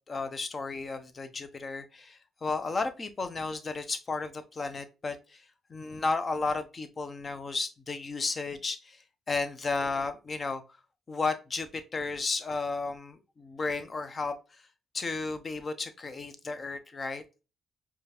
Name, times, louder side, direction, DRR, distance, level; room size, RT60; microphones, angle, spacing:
voice 1, 0.1-5.4 5.7-9.0 9.3-10.6 11.1-14.6 14.9-17.2, left 3 dB, 35° left, 0.7 m, -33 dB
4.9 x 2.4 x 2.9 m
cardioid pair, 90°, 0 cm